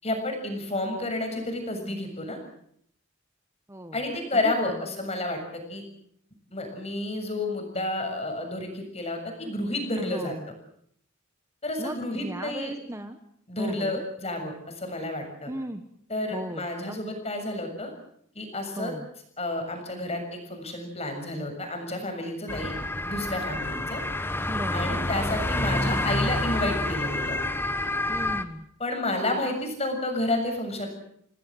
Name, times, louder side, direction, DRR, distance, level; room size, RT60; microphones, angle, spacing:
voice 1, 0.0-2.4 3.9-5.8 6.5-10.3 11.6-12.7 13.5-15.5 16.1-17.9 18.4-18.9 19.4-24.0 24.7-27.4 28.8-30.9, left 2 dB, 30° left, 4 dB, 7.0 m, -30 dB
voice 2, 4.3-4.9 10.0-10.5 11.8-13.2 13.6-14.0 15.5-15.8 16.3-17.0 18.8-19.1 24.5-25.4 28.1-28.7, right 1 dB, 15° right, 8 dB, 1.1 m, -36 dB
sound 1, 22.5-28.4, left 1 dB, 10° left, 1.2 m, -28 dB
28.5 x 19.0 x 7.7 m, 0.67 s
head